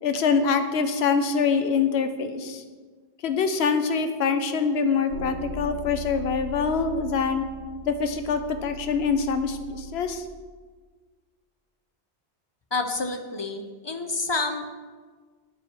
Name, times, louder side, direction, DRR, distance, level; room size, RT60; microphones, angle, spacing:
voice 1, 0.0-2.6 3.2-7.4 7.9-10.2, left 5 dB, 80° left, 8 dB, 0.9 m, -24 dB
sound 1, 5.1-10.2, right 1 dB, 80° right, 1.4 m, -38 dB
voice 2, 12.7-14.7, left 3 dB, 40° left, 5 dB, 0.4 m, -29 dB
9.0 x 4.7 x 4.6 m, 1.5 s
omnidirectional pair, 1.1 m